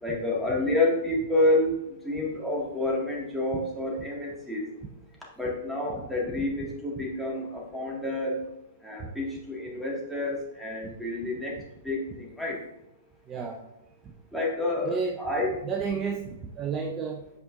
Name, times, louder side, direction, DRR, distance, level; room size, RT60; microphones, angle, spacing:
voice 1, 0.0-1.7 2.0-4.6 5.4-8.4 8.8-11.5 11.8-12.6 14.3-15.5, left 2 dB, ahead, -4 dB, 2.0 m, -28 dB
voice 2, 13.3-13.6 14.8-15.2 15.6-16.3 16.6-17.2, right 5 dB, 25° right, 2 dB, 0.6 m, -31 dB
8.2 x 5.2 x 2.6 m, 0.87 s
figure-of-eight pair, 115°, 0 cm